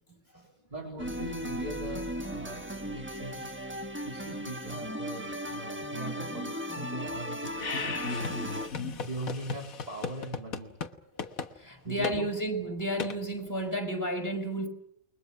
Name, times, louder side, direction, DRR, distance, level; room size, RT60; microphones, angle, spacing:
voice 1, 0.2-3.5 4.0-7.9 9.0-10.8 11.8-12.3, right 2 dB, 30° right, 1 dB, 4.1 m, -40 dB
sound 1, 1.0-8.7, equal, 10° right, 1.3 m, -36 dB
sound 2, 7.5-9.0, left 4 dB, 60° left, 1.7 m, -35 dB
sound 3, 8.0-10.9 11.2-11.5 12.0-12.2 13.0-13.2, left 6 dB, 90° left, 1.8 m, -37 dB
voice 2, 11.6-14.7, right 1 dB, 15° left, 1 dB, 5.5 m, -32 dB
29.5 x 22.0 x 6.1 m, 0.70 s
omnidirectional pair, 1.4 m